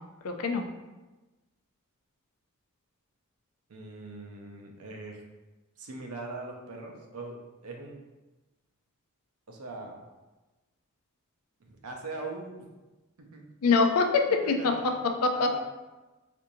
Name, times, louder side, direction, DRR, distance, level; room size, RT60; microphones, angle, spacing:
voice 1, 0.2-0.6 13.6-15.6, left 4 dB, 75° left, 5 dB, 0.4 m, -25 dB
voice 2, 3.7-5.2 5.8-7.4 7.6-8.0 9.5-10.0 11.7-12.7 13.2-13.5 14.3-15.0 15.3-15.6, right 3 dB, 90° right, 2 dB, 0.7 m, -41 dB
4.4 x 2.6 x 2.7 m, 1.1 s
head